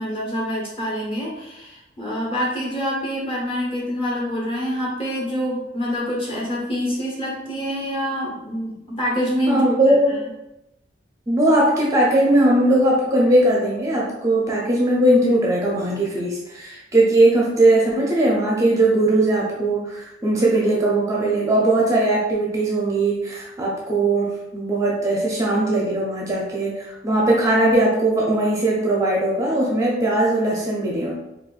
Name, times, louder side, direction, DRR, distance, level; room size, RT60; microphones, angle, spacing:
voice 1, 0.0-9.6 10.1-10.2, equal, 30° left, -4 dB, 1.0 m, -26 dB
voice 2, 9.5-10.2 11.3-31.1, right 1 dB, 20° right, -4 dB, 0.5 m, -19 dB
4.2 x 2.3 x 2.4 m, 0.91 s
head